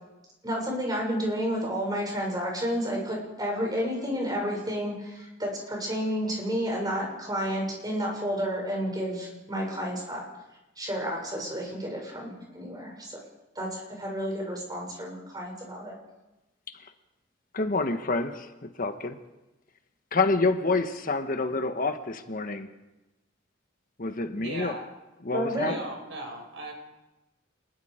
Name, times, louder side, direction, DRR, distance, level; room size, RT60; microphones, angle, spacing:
voice 1, 0.4-10.3 10.7-13.2 13.5-15.9 25.3-25.7, equal, 20° right, -1 dB, 6.9 m, -31 dB
voice 2, 17.5-19.2 20.1-22.7 24.0-24.7 25.2-25.7, left 3 dB, 45° left, 7 dB, 1.3 m, -28 dB
voice 3, 24.3-24.9 25.6-26.7, right 1 dB, 70° right, 2 dB, 5.9 m, -38 dB
27.5 x 21.0 x 5.1 m, 1.0 s
head